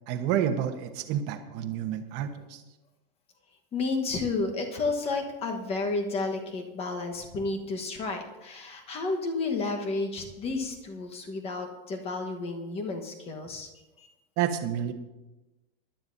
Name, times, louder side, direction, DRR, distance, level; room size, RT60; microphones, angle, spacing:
voice 1, 0.1-2.6 14.4-14.9, right 9 dB, 35° right, 6 dB, 1.0 m, -29 dB
voice 2, 3.7-13.7 14.0-14.1, left 3 dB, 20° left, 3 dB, 1.2 m, -31 dB
20.0 x 11.5 x 2.7 m, 1.1 s
supercardioid pair, 170°, 29 cm